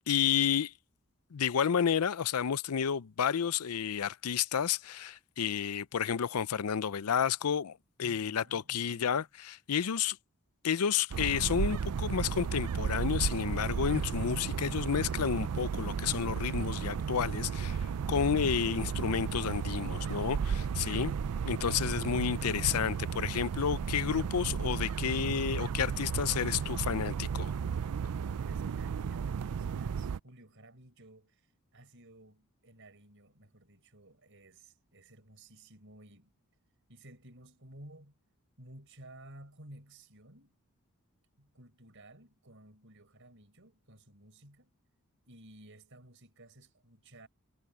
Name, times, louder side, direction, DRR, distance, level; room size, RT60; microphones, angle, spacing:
voice 1, 0.1-0.7 1.3-10.2 10.6-17.8 18.1-21.1 21.4-27.5, left 8 dB, 80° left, 0.5 m, -31 dB
voice 2, 8.0-9.3 28.1-31.5 31.7-36.3 36.9-38.1 38.6-40.6 41.4-44.8 45.3-47.3, right 1 dB, 60° right, 5.4 m, -55 dB
sound 1, 11.1-30.2, right 6 dB, 85° right, 0.4 m, -34 dB
head